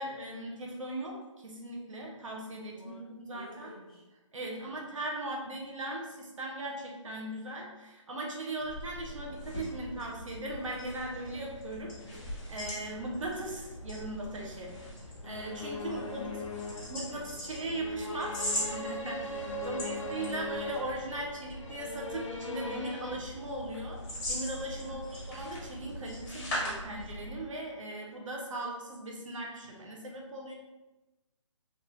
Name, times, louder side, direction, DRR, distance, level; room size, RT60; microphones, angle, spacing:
voice 1, 0.0-3.7 4.3-11.9 12.5-14.9 15.2-16.4 16.8-18.4 18.7-24.0 24.3-30.5, right 1 dB, 70° right, -1 dB, 0.8 m, -38 dB
voice 2, 2.7-4.1 4.5-4.8 11.7-12.4 12.7-13.0 15.8-17.1 19.6-20.1 24.8-25.3, equal, 5° left, -14 dB, 1.2 m, -52 dB
sound 1, 8.6-27.5, equal, 20° left, 1.4 m, -41 dB
sound 2, 15.2-23.2, left 2 dB, 70° left, 0.6 m, -40 dB
3.2 x 2.5 x 3.1 m, 1.1 s
hypercardioid pair, 165°, 17 cm